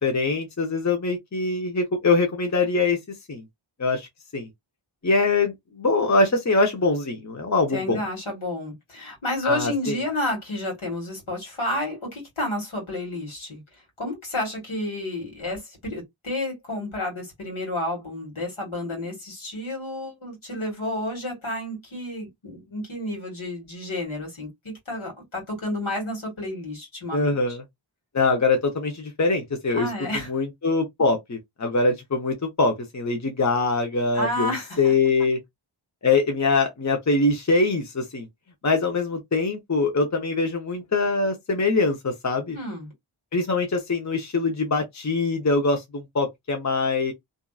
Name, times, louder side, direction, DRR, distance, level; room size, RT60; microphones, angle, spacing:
voice 1, 0.0-3.0 3.3-3.4 3.8-4.1 4.3-4.5 5.0-8.0 9.4-10.0 27.1-27.6 28.1-29.9 30.3-35.4 36.0-38.3 38.6-42.6 43.3-47.1, left 3 dB, 35° left, 0.8 m, -23 dB
voice 2, 7.7-13.6 14.0-27.6 29.7-30.3 34.1-34.9 42.5-42.9, left 1 dB, 70° left, 1.7 m, -31 dB
2.7 x 2.4 x 2.3 m
wide cardioid pair, 45°, 49 cm